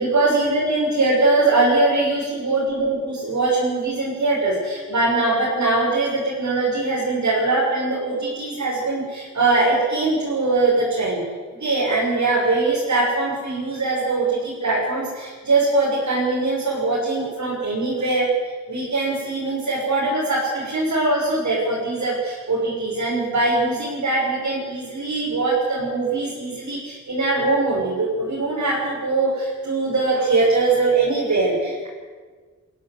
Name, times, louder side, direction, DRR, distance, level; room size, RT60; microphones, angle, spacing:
voice 1, 0.0-11.2 11.6-31.9, right 2 dB, 65° right, -6 dB, 6.6 m, -22 dB
23.5 x 15.5 x 8.2 m, 1.5 s
wide cardioid pair, 95°, 31 cm